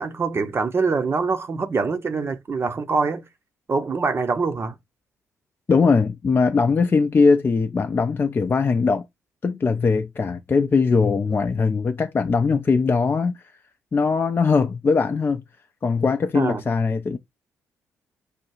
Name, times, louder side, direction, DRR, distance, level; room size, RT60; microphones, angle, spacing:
voice 1, 0.0-3.2 3.7-4.8 16.3-16.6, right 4 dB, 35° right, 0.8 m, -24 dB
voice 2, 5.7-9.1 9.4-13.4 13.9-15.4 15.8-17.2, left 4 dB, 30° left, 0.5 m, -20 dB
4.9 x 2.3 x 4.5 m
figure-of-eight pair, 40°, 7 cm